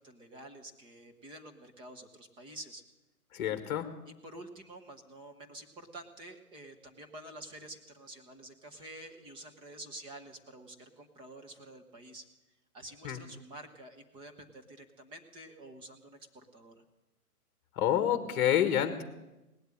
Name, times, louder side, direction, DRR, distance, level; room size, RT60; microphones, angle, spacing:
voice 1, 0.0-2.8 4.2-12.2 12.7-16.7, right 1 dB, 10° right, 5 dB, 1.0 m, -49 dB
voice 2, 3.3-3.9 13.0-13.2 17.7-19.0, left 10 dB, 30° left, 9 dB, 1.6 m, -28 dB
18.5 x 8.0 x 9.9 m, 1.0 s
hypercardioid pair, 145°, 46 cm